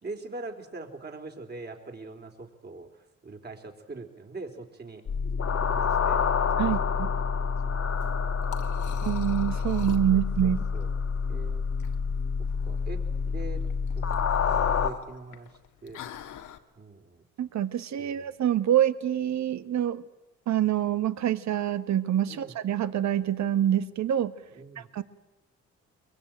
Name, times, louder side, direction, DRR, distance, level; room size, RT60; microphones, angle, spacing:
voice 1, 0.0-5.0 5.5-6.2 7.3-9.1 10.1-10.9 11.3-11.6 12.6-13.6 13.9-15.5 15.8-16.0 16.8-17.2 18.0-18.3 22.3-22.5 24.5-24.9, right 3 dB, 35° right, 4 dB, 3.9 m, -43 dB
sound 1, 5.1-14.9, left 6 dB, 55° left, 2.0 m, -28 dB
voice 2, 6.6-7.1 9.0-10.6 17.4-20.0 20.5-24.3 24.8-25.0, right 11 dB, 65° right, 13 dB, 1.4 m, -26 dB
Liquid, 7.9-16.6, left 10 dB, 80° left, 1.7 m, -46 dB
23.0 x 22.5 x 9.0 m, 1.0 s
cardioid pair, 90°, 30 cm